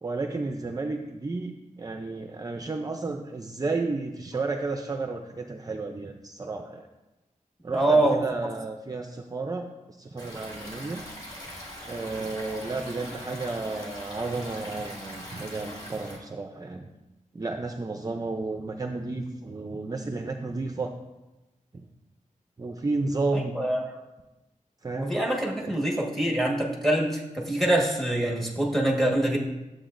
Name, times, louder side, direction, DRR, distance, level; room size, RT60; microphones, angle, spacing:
voice 1, 0.0-6.9 7.6-11.0 11.8-16.9 17.3-20.9 21.7-21.8 22.6-23.6 24.8-25.2 25.6-25.7, right 3 dB, 30° right, 4 dB, 0.5 m, -32 dB
voice 2, 7.7-8.2 23.3-23.8 24.9-29.4, right 1 dB, ahead, -2 dB, 1.4 m, -24 dB
Stream, 10.2-16.2, equal, 30° left, 2.2 m, -41 dB
12.0 x 7.7 x 2.6 m, 1.0 s
wide cardioid pair, 130°, 13 cm